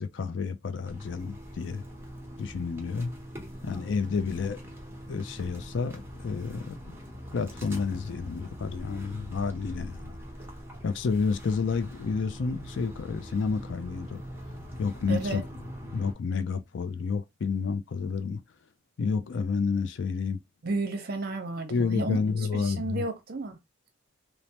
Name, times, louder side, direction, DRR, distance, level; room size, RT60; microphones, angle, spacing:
voice 1, 0.0-1.8 2.4-3.1 3.6-4.6 5.1-6.9 7.3-10.2 10.8-14.2 14.8-15.4 15.9-18.4 19.0-20.4 21.7-23.1, left 5 dB, 65° left, 0.4 m, -30 dB
sound 1, 0.9-16.1, equal, 10° right, 0.8 m, -43 dB
voice 2, 15.1-15.4 20.6-22.2 22.5-23.6, right 2 dB, 50° right, 0.7 m, -32 dB
3.2 x 2.0 x 2.7 m
head